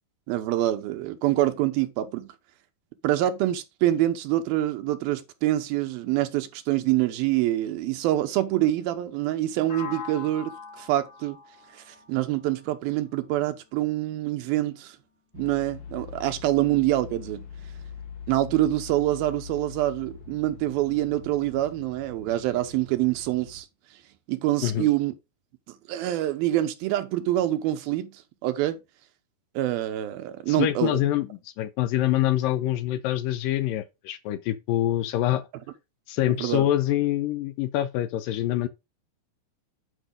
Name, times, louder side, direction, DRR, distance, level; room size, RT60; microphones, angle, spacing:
voice 1, 0.3-2.3 3.0-11.4 11.7-15.0 15.3-17.5 18.3-23.7 24.3-25.1 25.7-28.8 29.6-31.0 36.4-36.7, right 14 dB, 80° right, 2.7 m, -26 dB
sound 1, 9.7-13.6, left 6 dB, 40° left, 1.7 m, -42 dB
sound 2, 15.3-23.6, left 6 dB, 65° left, 3.4 m, -43 dB
voice 2, 30.5-35.4 36.1-38.7, left 13 dB, 80° left, 2.2 m, -25 dB
10.0 x 5.2 x 3.8 m
omnidirectional pair, 4.3 m